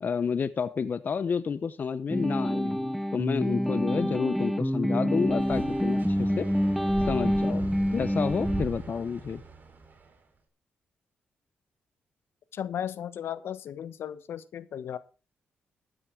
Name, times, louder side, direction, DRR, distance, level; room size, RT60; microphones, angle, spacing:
voice 1, 0.0-6.5 7.0-9.4, left 6 dB, 50° left, 14 dB, 0.7 m, -30 dB
sound 1, 2.1-8.6, equal, ahead, 1.1 m, -27 dB
sound 2, 5.2-10.1, right 3 dB, 50° right, 3.5 m, -40 dB
voice 2, 12.5-15.0, left 9 dB, 75° left, 15 dB, 1.0 m, -35 dB
13.0 x 9.8 x 4.6 m, 0.33 s
cardioid pair, 70°, 4 cm